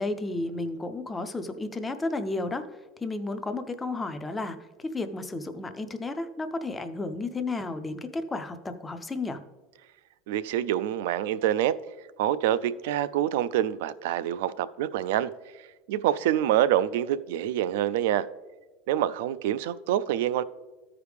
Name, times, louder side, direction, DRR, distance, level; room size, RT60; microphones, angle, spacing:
voice 1, 0.0-2.6 3.0-9.4, left 2 dB, 10° left, 9 dB, 0.4 m, -32 dB
voice 2, 10.3-11.8 12.2-15.3 15.9-18.3 18.9-20.4, right 11 dB, 75° right, 15 dB, 0.3 m, -26 dB
13.5 x 4.8 x 3.4 m, 1.2 s
cardioid pair, 175°, 0 cm